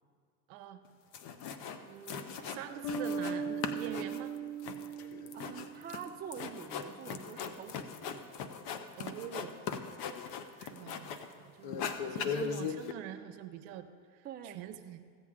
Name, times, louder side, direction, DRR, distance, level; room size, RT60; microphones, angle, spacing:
voice 1, 0.5-0.8 1.8-4.4 9.0-9.5 10.6-13.8 14.1-15.0, right 10 dB, 55° right, 8 dB, 0.8 m, -45 dB
sound 1, 0.9-1.0 1.1-1.8 2.1-3.4 3.6-11.3 11.6-12.9, left 6 dB, 45° left, 0.8 m, -39 dB
sound 2, 2.8-6.2, right 5 dB, 80° left, 1.4 m, -38 dB
voice 2, 5.0-8.3 14.2-14.6, right 8 dB, 20° right, 5 dB, 0.6 m, -46 dB
15.0 x 8.2 x 3.7 m, 2.2 s
hypercardioid pair, 110°, 49 cm